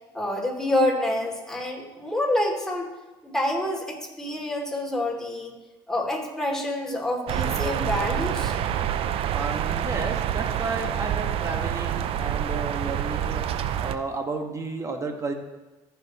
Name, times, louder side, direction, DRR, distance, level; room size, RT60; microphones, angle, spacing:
voice 1, 0.1-2.9 3.2-5.5 5.9-8.5, left 1 dB, 5° left, -1 dB, 2.8 m, -27 dB
sound 1, 7.3-14.0, right 10 dB, 60° right, 0.6 m, -27 dB
voice 2, 9.3-13.4 13.8-15.3, right 3 dB, 30° right, 4 dB, 1.6 m, -32 dB
15.0 x 5.9 x 3.1 m, 1.1 s
supercardioid pair, 75°, 11 cm